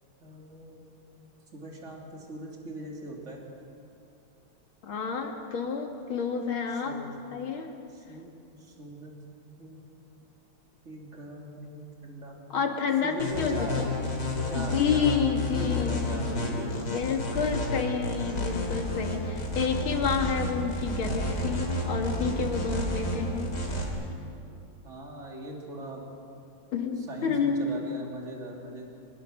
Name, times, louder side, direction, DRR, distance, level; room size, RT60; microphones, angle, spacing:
voice 1, 0.2-0.9 1.5-3.4 6.7-7.1 7.9-9.2 9.6-9.8 10.8-12.4 13.0-13.9 14.5-15.2 15.5-17.3 24.8-26.1 27.1-28.8, right 2 dB, 35° right, -1 dB, 3.3 m, -41 dB
voice 2, 4.8-7.0 7.3-7.7 12.5-13.9 14.6-23.6 26.7-27.6, left 6 dB, 80° left, 3 dB, 2.7 m, -29 dB
sound 1, 13.2-23.9, left 1 dB, 55° left, 3.8 m, -31 dB
24.0 x 21.5 x 6.5 m, 2.6 s
omnidirectional pair, 2.2 m